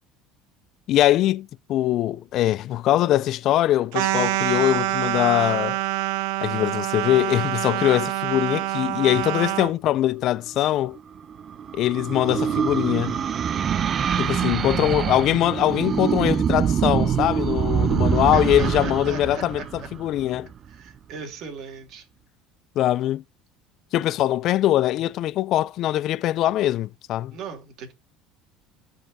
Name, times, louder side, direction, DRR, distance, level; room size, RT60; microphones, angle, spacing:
voice 1, 0.9-5.8 6.4-11.0 11.7-13.2 14.2-20.5 22.8-23.2 23.9-27.4, left 13 dB, 55° left, 0.4 m, -22 dB
sound 1, 3.9-9.7, right 16 dB, 80° right, 0.8 m, -26 dB
sound 2, 11.0-20.5, right 8 dB, 35° right, 0.5 m, -25 dB
voice 2, 18.3-19.9 20.7-22.1 27.3-27.9, right 5 dB, 55° right, 3.3 m, -38 dB
15.0 x 5.4 x 2.7 m
supercardioid pair, 120°, 0 cm